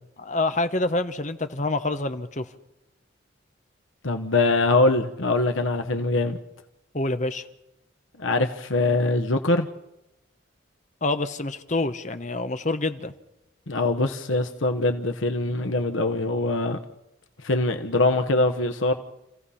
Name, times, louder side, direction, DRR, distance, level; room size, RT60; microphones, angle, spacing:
voice 1, 0.2-2.4 6.9-7.5 11.0-13.1, left 2 dB, 40° left, 9 dB, 1.1 m, -27 dB
voice 2, 4.0-6.4 8.2-9.7 13.7-16.8 17.4-18.9, left 2 dB, 85° left, 5 dB, 1.2 m, -23 dB
29.0 x 15.5 x 5.7 m, 0.89 s
head